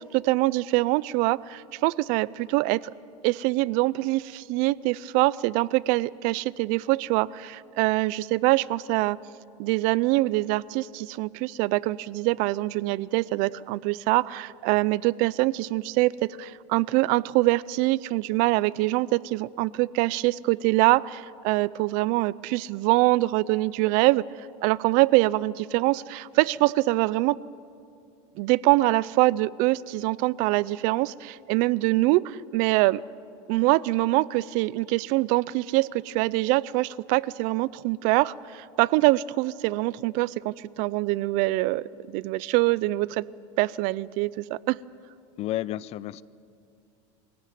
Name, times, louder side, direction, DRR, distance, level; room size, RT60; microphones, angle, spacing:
voice 1, 0.0-2.9 3.2-9.2 9.6-24.2 24.6-27.4 28.4-33.0 33.5-43.2 43.6-44.8, right 20 dB, 60° right, 21 dB, 0.5 m, -24 dB
voice 2, 45.4-46.2, left 14 dB, 45° left, 20 dB, 0.5 m, -31 dB
23.0 x 16.5 x 9.3 m, 2.5 s
supercardioid pair, 130°, 15 cm